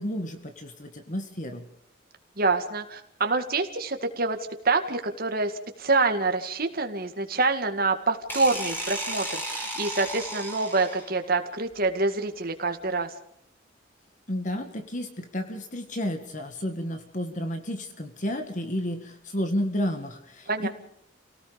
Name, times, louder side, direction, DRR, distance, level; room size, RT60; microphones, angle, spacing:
voice 1, 0.0-1.7 14.3-20.7, equal, 40° left, 7 dB, 1.9 m, -31 dB
voice 2, 2.4-4.4 4.6-5.5 5.8-13.1 20.5-20.7, right 3 dB, 50° right, 6 dB, 2.1 m, -26 dB
sound 1, 8.3-11.2, right 1 dB, 10° left, 5.4 m, -34 dB
29.0 x 18.0 x 5.2 m, 0.71 s
head